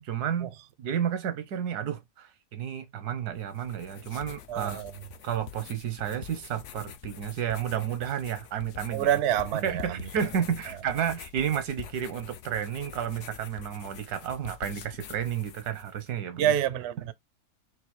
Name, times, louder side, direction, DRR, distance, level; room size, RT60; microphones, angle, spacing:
voice 1, 0.0-0.5 0.8-4.8 5.2-9.1 9.6-16.5, right 9 dB, 85° right, 1.3 m, -31 dB
sound 1, 3.4-16.1, left 11 dB, 65° left, 0.7 m, -46 dB
voice 2, 4.5-4.9 8.9-10.1 16.4-17.1, right 10 dB, 65° right, 0.7 m, -27 dB
3.9 x 2.6 x 4.1 m
omnidirectional pair, 1.6 m